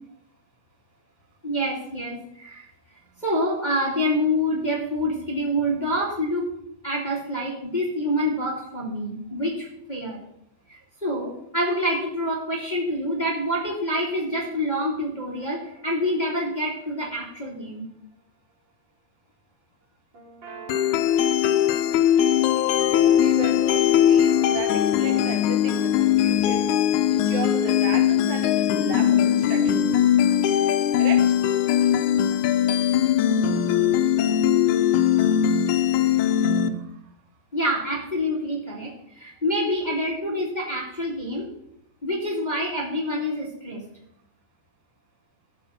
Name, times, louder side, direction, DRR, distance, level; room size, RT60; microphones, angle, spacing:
voice 1, 1.4-2.7 3.2-6.5 6.8-10.2 10.7-17.9 37.5-41.5 42.0-43.8, equal, 15° left, -4 dB, 2.2 m, -27 dB
sound 1, 15.3-17.4 20.1-26.1, right 2 dB, 30° right, 3.8 m, -44 dB
sound 2, 20.7-36.7, left 10 dB, 75° left, 1.8 m, -20 dB
voice 2, 22.8-26.7 27.1-30.4 31.0-31.5 32.0-32.2 32.6-32.7 36.1-37.0, right 7 dB, 80° right, 6 dB, 3.0 m, -37 dB
13.5 x 7.4 x 5.7 m, 0.77 s
omnidirectional pair, 4.2 m